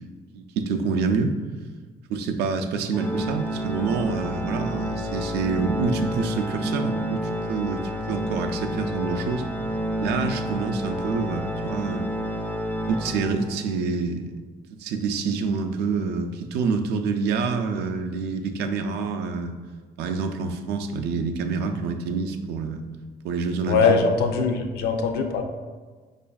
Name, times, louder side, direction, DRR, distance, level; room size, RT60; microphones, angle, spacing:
voice 1, 0.3-1.4 2.1-9.5 10.0-12.1 12.9-14.3 14.7-19.5 20.0-22.9 23.2-24.0, right 4 dB, 75° right, 6 dB, 0.4 m, -27 dB
Organ, 2.9-13.8, equal, 10° left, 0.3 m, -30 dB
voice 2, 23.7-25.4, left 5 dB, 70° left, 4 dB, 0.5 m, -21 dB
4.9 x 2.4 x 2.3 m, 1.4 s
cardioid pair, 110°, 17 cm